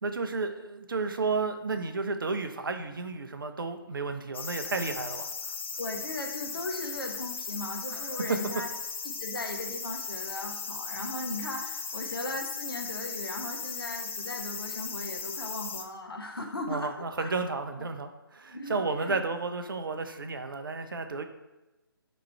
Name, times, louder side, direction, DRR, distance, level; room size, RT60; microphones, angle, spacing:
voice 1, 0.0-5.5 7.9-8.3 16.7-21.2, right 4 dB, 60° right, 7 dB, 0.4 m, -32 dB
sound 1, 4.3-15.8, left 5 dB, 30° left, 0.4 m, -37 dB
voice 2, 5.8-8.7 9.2-16.9 17.2-17.3 17.8-17.9 18.5-19.2, left 2 dB, 70° left, 2 dB, 0.8 m, -37 dB
3.6 x 3.0 x 4.3 m, 1.0 s
figure-of-eight pair, 145°, 13 cm